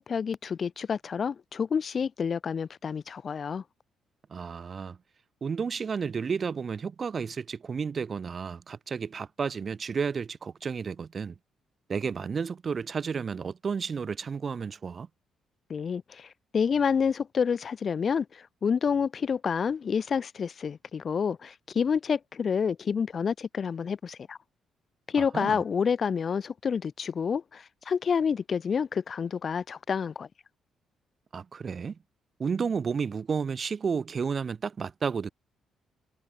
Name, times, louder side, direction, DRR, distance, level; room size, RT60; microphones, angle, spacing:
voice 1, 0.0-3.6 15.7-24.4 25.1-30.3, left 6 dB, 45° left, 3.9 m, -28 dB
voice 2, 4.3-5.0 5.4-11.4 11.9-15.1 25.2-25.6 31.3-32.0 32.4-35.3, right 6 dB, 40° right, 1.8 m, -32 dB
cardioid pair, 90°, 0 cm